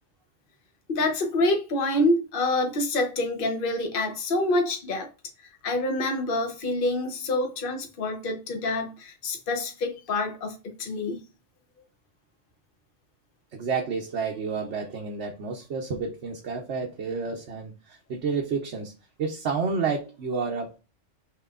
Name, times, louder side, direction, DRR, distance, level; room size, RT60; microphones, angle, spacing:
voice 1, 0.9-5.1 5.6-11.2, left 2 dB, 50° left, 1.1 m, -27 dB
voice 2, 13.5-18.9 19.2-20.8, right 5 dB, 70° right, 1.0 m, -30 dB
5.8 x 3.1 x 2.4 m
omnidirectional pair, 1.2 m